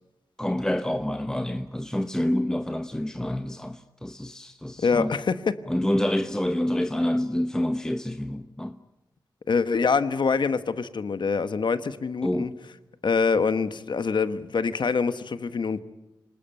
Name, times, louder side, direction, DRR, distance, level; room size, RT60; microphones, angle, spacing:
voice 1, 0.4-5.1 5.7-8.8 12.2-12.6, left 1 dB, 10° left, 0.9 m, -27 dB
voice 2, 4.8-5.6 9.5-12.5 13.0-15.8, left 5 dB, 70° left, 1.2 m, -25 dB
27.0 x 19.5 x 9.0 m
wide cardioid pair, 90°, 8 cm